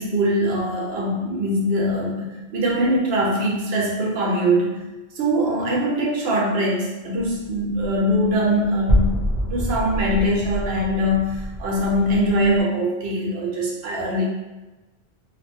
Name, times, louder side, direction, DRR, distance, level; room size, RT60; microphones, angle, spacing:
voice 1, 0.0-4.8 5.2-14.2, equal, 70° right, -2 dB, 0.9 m, -22 dB
sound 1, 7.2-12.6, equal, 45° left, 0.8 m, -26 dB
2.5 x 2.2 x 2.6 m, 1.1 s
omnidirectional pair, 1.1 m